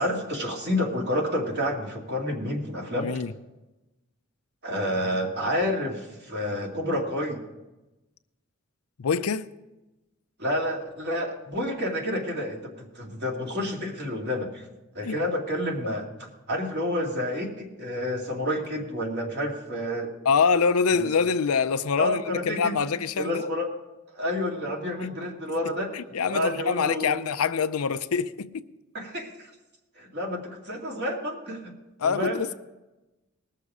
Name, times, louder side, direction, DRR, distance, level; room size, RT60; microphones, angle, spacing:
voice 1, 0.0-3.1 4.6-7.4 10.4-14.6 14.9-16.1 16.5-20.1 20.9-21.1 22.0-22.7 23.2-23.7 24.1-25.9 26.2-27.2 28.9-29.5 30.0-31.7 32.0-32.4, left 1 dB, 50° right, 2.3 m, -29 dB
voice 2, 2.9-3.3 9.0-9.5 15.0-15.2 20.3-23.5 25.9-28.7 32.0-32.5, left 5 dB, 85° left, 0.5 m, -25 dB
20.0 x 6.7 x 4.9 m
head